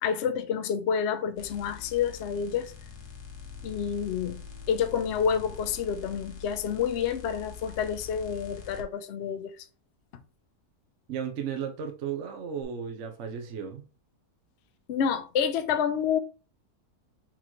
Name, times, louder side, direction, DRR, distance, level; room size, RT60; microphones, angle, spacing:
voice 1, 0.0-2.7 3.6-4.4 4.7-9.5 14.9-16.2, left 7 dB, 60° left, 0.7 m, -28 dB
sound 1, 1.4-8.8 12.6-12.7, left 6 dB, 80° left, 1.5 m, -44 dB
voice 2, 11.1-13.9, right 7 dB, 55° right, 1.0 m, -34 dB
4.4 x 3.9 x 3.0 m
omnidirectional pair, 1.7 m